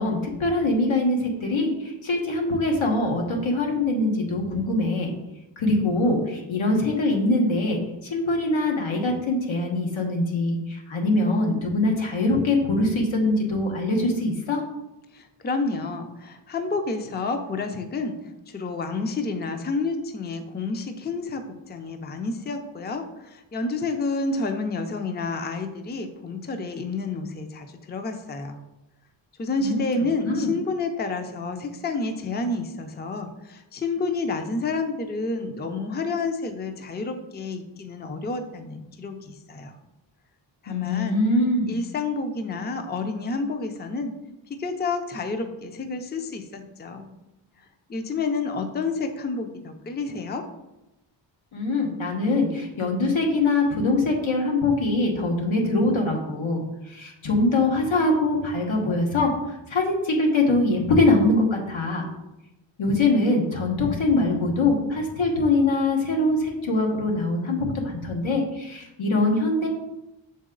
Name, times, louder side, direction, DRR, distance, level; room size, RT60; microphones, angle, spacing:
voice 1, 0.0-5.1 5.6-7.8 8.1-14.6 29.6-29.8 30.2-30.5 40.7-41.7 51.5-56.6 56.9-59.3 59.7-62.1 62.8-69.7, left 2 dB, 90° left, 1 dB, 1.3 m, -23 dB
voice 2, 15.1-18.2 18.5-28.6 29.4-39.7 40.6-41.2 41.7-44.1 44.5-47.1 47.9-50.4, left 3 dB, 25° left, 7 dB, 0.5 m, -29 dB
6.6 x 4.1 x 3.8 m, 0.95 s
wide cardioid pair, 130°, 46 cm